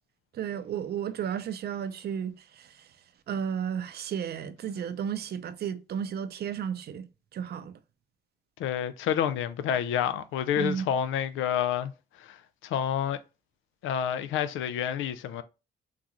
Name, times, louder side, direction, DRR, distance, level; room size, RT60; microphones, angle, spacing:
voice 1, 0.3-2.9 3.3-7.1 7.3-7.7 10.6-10.9, right 8 dB, 55° right, 0.5 m, -33 dB
voice 2, 8.6-11.9 12.2-12.4 12.6-13.2 13.8-15.4, left 9 dB, 80° left, 0.4 m, -28 dB
3.8 x 2.4 x 2.9 m
cardioid pair, 90°, 20 cm